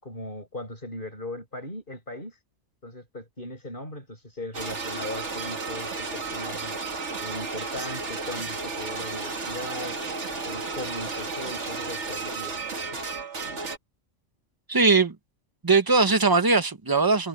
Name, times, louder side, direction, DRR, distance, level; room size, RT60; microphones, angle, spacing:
voice 1, 0.0-2.4 2.8-6.8 7.2-10.0 10.4-13.1, left 1 dB, 45° left, 7.9 m, -38 dB
sound 1, 4.5-13.8, right 4 dB, 65° right, 2.1 m, -33 dB
voice 2, 14.7-15.2 15.6-17.3, right 3 dB, 20° right, 0.9 m, -20 dB
omnidirectional pair, 1.3 m